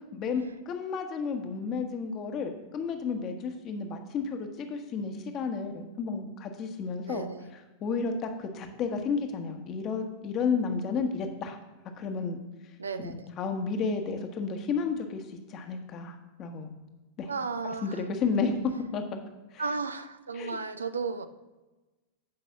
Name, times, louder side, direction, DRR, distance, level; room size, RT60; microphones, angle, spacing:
voice 1, 0.1-7.3 7.8-11.6 12.0-12.4 13.0-15.2 15.5-16.7 17.2-17.3 17.8-18.5 18.9-19.2 19.5-19.6 20.4-20.6, left 5 dB, 35° left, 5 dB, 1.2 m, -32 dB
voice 2, 7.0-7.5 12.8-13.3 17.3-18.1 19.6-21.3, right 4 dB, 75° right, 11 dB, 0.6 m, -34 dB
8.6 x 5.4 x 5.9 m, 1.1 s
figure-of-eight pair, 90°, 0 cm